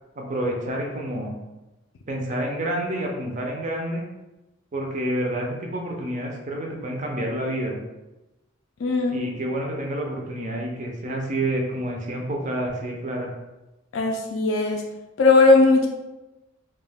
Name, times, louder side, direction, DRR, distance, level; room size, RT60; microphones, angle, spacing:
voice 1, 0.2-1.4 2.1-4.0 4.7-7.8 9.1-13.3, right 1 dB, 35° right, 0 dB, 0.5 m, -28 dB
voice 2, 8.8-9.2 13.9-14.8 15.2-15.9, left 3 dB, 65° left, 1 dB, 0.3 m, -18 dB
2.3 x 2.2 x 3.3 m, 1.0 s
head